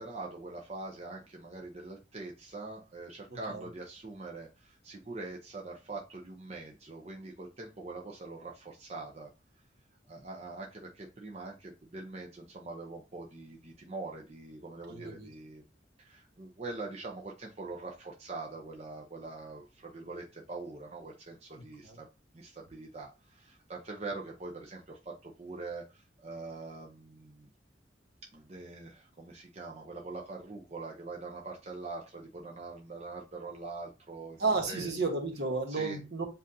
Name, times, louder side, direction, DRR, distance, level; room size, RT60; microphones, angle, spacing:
voice 1, 0.0-9.3 9.6-9.7 10.1-15.6 16.0-22.1 22.3-27.5 28.3-34.9 35.7-36.0, right 3 dB, 35° right, 0.6 m, -43 dB
voice 2, 14.9-15.3 21.8-22.0 34.4-36.2, right 3 dB, 60° right, 1.2 m, -32 dB
7.5 x 2.6 x 2.7 m
head